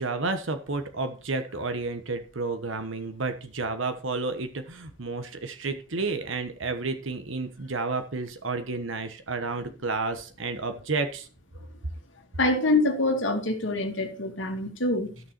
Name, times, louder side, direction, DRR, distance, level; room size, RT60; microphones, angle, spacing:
voice 1, 0.0-11.3, right 3 dB, 75° right, 1.2 m, -31 dB
voice 2, 12.4-15.1, left 2 dB, 70° left, 2.1 m, -25 dB
14.0 x 6.5 x 4.5 m
head